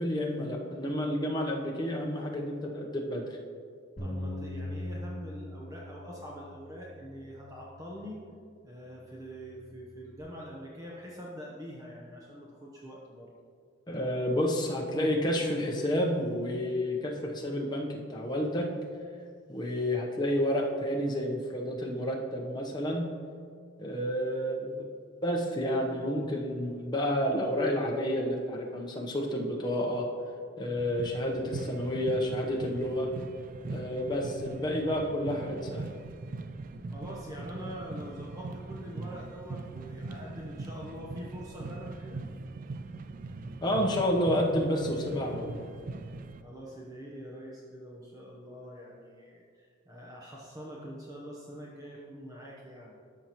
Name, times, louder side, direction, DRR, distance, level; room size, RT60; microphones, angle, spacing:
voice 1, 0.0-3.2 13.9-18.7 19.5-23.1 23.8-24.9 25.2-30.1 30.6-33.1 33.7-35.8 43.6-45.7, equal, 20° left, -1 dB, 0.9 m, -30 dB
Bass guitar, 4.0-8.4 9.0-10.2, left 1 dB, 40° left, 1.6 m, -42 dB
voice 2, 4.0-8.2 8.6-13.3 36.9-42.3 46.4-53.0, equal, 20° right, -4 dB, 0.9 m, -44 dB
sound 1, 30.8-46.4, right 3 dB, 45° right, 0.3 m, -41 dB
13.5 x 5.7 x 3.0 m, 2.1 s
head